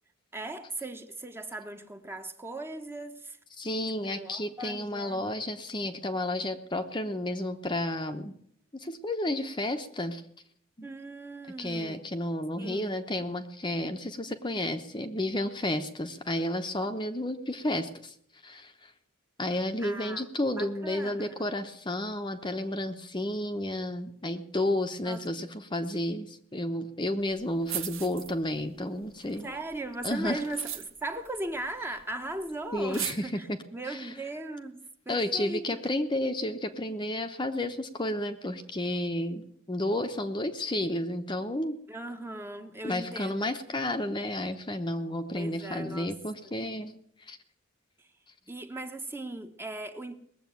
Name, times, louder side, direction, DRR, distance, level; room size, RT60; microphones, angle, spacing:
voice 1, 0.3-3.4 4.0-5.3 10.8-12.0 12.6-13.0 19.8-20.2 20.6-21.4 25.0-25.2 29.4-35.8 41.9-43.5 45.3-46.1 46.4-46.5 48.0-48.1 48.5-50.2, right 2 dB, 10° right, 1.0 m, -38 dB
voice 2, 3.6-8.3 8.7-10.2 10.8-10.9 11.6-18.1 18.4-18.7 19.4-29.5 30.0-30.4 32.7-33.6 33.9-34.1 35.1-41.8 42.8-46.9 47.3-47.4, left 1 dB, 20° left, 0.8 m, -31 dB
sound 1, 27.3-27.4 27.6-28.7 29.0-32.1 32.4-32.5 32.8-33.1, right 11 dB, 75° right, 1.5 m, -38 dB
19.5 x 7.7 x 9.2 m
head